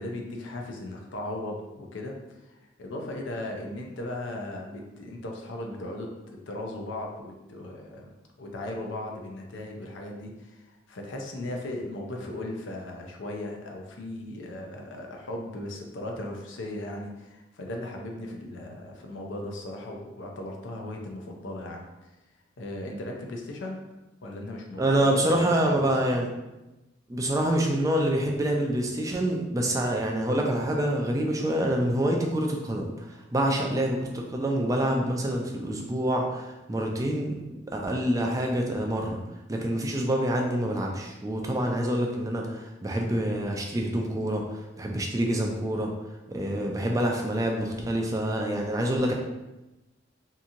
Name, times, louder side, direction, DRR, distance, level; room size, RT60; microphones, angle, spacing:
voice 1, 0.0-22.1 22.6-23.8 24.2-26.1, left 1 dB, 70° left, 1 dB, 0.5 m, -37 dB
voice 2, 24.8-26.3 27.1-37.4 37.7-39.2 39.5-45.9 46.3-49.1, right 1 dB, 15° right, 1 dB, 0.3 m, -26 dB
2.8 x 2.6 x 2.5 m, 1.0 s
head